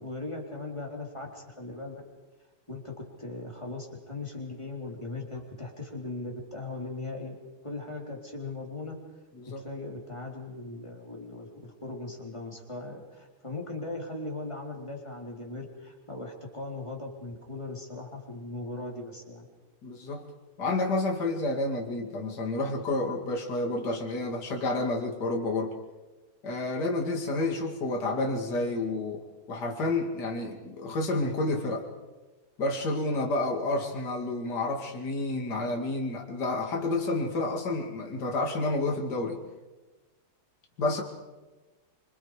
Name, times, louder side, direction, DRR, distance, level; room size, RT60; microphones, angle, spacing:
voice 1, 0.0-2.0 2.7-2.9 3.2-7.4 7.6-8.9 9.6-19.5, left 2 dB, 15° left, 0 dB, 3.9 m, -39 dB
voice 2, 19.8-20.2 20.6-25.7 26.4-29.2 29.5-31.8 32.6-39.4 40.8-41.0, left 2 dB, 55° left, 0 dB, 3.0 m, -30 dB
26.5 x 26.5 x 5.1 m, 1.2 s
omnidirectional pair, 2.2 m